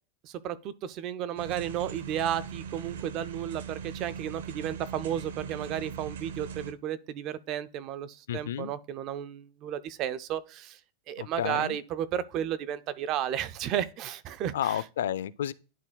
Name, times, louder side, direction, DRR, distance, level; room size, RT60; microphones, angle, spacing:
voice 1, 0.2-10.8 11.1-14.8, right 10 dB, 30° right, 0.4 m, -33 dB
sound 1, 1.4-6.7, right 7 dB, 85° right, 0.7 m, -40 dB
voice 2, 8.3-8.7 11.2-11.8 14.5-15.5, left 10 dB, 85° left, 0.4 m, -31 dB
11.0 x 4.1 x 2.2 m
supercardioid pair, 165°, 0 cm